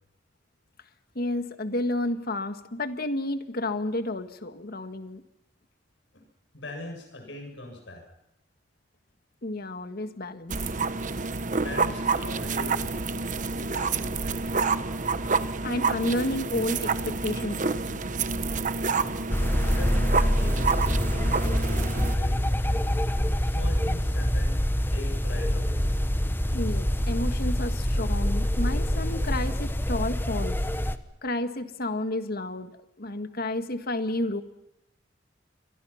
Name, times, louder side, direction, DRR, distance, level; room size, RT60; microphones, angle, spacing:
voice 1, 1.1-5.2 9.4-10.5 15.6-18.0 26.5-30.6 31.2-32.7 33.0-34.4, left 1 dB, 55° left, 9 dB, 1.7 m, -31 dB
voice 2, 6.5-8.0 11.6-12.8 13.5-14.6 19.6-23.0 23.4-24.6 24.8-25.9, left 2 dB, 75° left, 3 dB, 7.4 m, -41 dB
sound 1, 10.5-22.2, right 4 dB, 45° right, 1.1 m, -28 dB
sound 2, 19.3-31.0, equal, 10° left, 1.2 m, -25 dB
28.5 x 24.0 x 5.8 m, 0.87 s
head